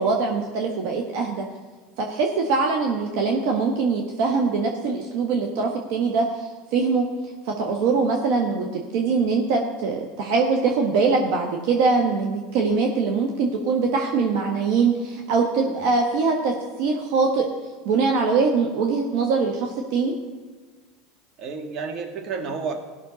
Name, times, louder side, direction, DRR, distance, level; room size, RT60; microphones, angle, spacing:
voice 1, 0.0-1.5 2.0-7.1 7.4-8.7 8.9-16.5 16.8-17.5 17.8-20.1, right 4 dB, 65° right, 1 dB, 1.2 m, -22 dB
voice 2, 21.4-22.7, right 5 dB, 45° right, 3 dB, 1.7 m, -31 dB
16.5 x 6.3 x 4.1 m, 1.4 s
hypercardioid pair, 95°, 0 cm